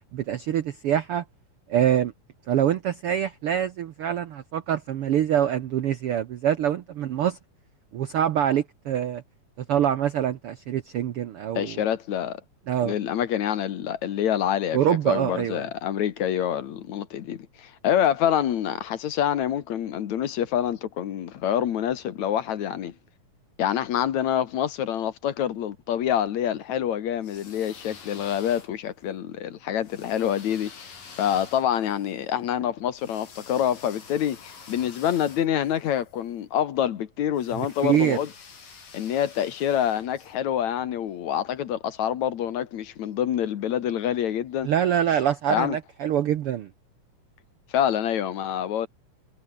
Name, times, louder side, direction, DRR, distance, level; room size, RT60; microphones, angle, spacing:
voice 1, 0.1-1.2 1.7-2.1 2.5-7.4 7.9-9.2 9.6-11.8 12.7-12.9 14.7-15.7 37.5-38.2 44.6-46.7, right 10 dB, 70° right, 1.3 m, -25 dB
voice 2, 11.6-12.4 12.8-22.9 23.6-38.3 38.9-44.7 45.5-45.8 47.7-48.9, left 10 dB, 65° left, 2.6 m, -26 dB
sound 1, 27.2-29.0 29.8-36.2 37.3-40.4, left 5 dB, 90° left, 6.5 m, -48 dB
omnidirectional pair, 3.8 m